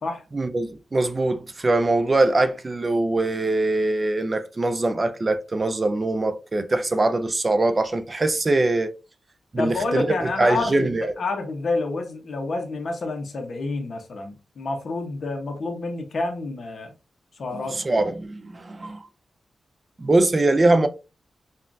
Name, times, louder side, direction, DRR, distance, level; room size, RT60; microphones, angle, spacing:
voice 1, 0.3-8.9 9.5-11.1 17.5-19.1 20.0-20.9, right 2 dB, 25° right, 0.3 m, -22 dB
voice 2, 9.6-16.9 17.3-17.8, left 3 dB, 55° left, 0.9 m, -28 dB
5.5 x 2.3 x 2.5 m
wide cardioid pair, 150°, 0 cm